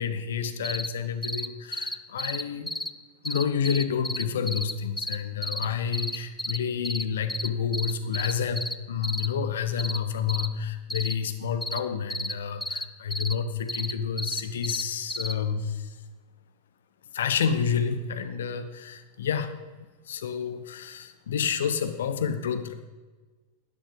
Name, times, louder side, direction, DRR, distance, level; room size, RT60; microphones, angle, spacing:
voice 1, 0.0-2.7 3.2-15.9 17.1-19.6 20.1-22.7, left 7 dB, 60° left, 9 dB, 0.9 m, -29 dB
sound 1, 0.6-0.9 1.2-1.5 1.7-2.9 3.2-5.2 5.4-5.6 5.9-6.6 6.8-7.0 7.3-7.5 7.7-8.7 9.0-9.3 9.8-10.0 10.3-10.5 10.9-11.1 11.6-11.8 12.1-12.3 12.6-12.8 13.1-13.3 13.7-14.8 15.1-15.3, left 1 dB, ahead, 0.5 m, -31 dB
10.0 x 9.6 x 5.2 m, 1.3 s
figure-of-eight pair, 90°, 0 cm